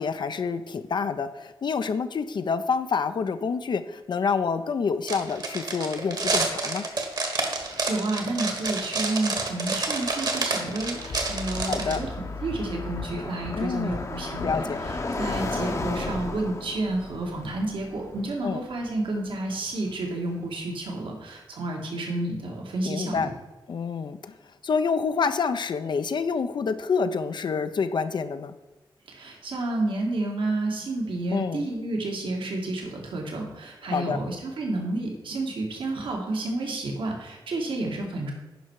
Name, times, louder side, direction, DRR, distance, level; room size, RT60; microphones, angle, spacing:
voice 1, 0.0-6.8 11.6-12.0 13.6-14.1 14.4-14.8 18.4-18.6 22.8-23.3 23.7-24.3 24.6-28.5 31.3-31.7 33.9-34.2, left 5 dB, 60° left, 10 dB, 0.6 m, -27 dB
sound 1, 5.1-12.0, right 3 dB, 50° right, 1.6 m, -28 dB
voice 2, 7.5-23.3 29.1-38.3, right 2 dB, 75° right, 0 dB, 1.9 m, -30 dB
Car passing by, 8.1-20.1, left 2 dB, 35° left, 0.8 m, -36 dB
sound 2, 10.8-16.1, left 3 dB, 80° left, 1.4 m, -38 dB
10.5 x 5.4 x 4.7 m, 1.1 s
wide cardioid pair, 95°, 9 cm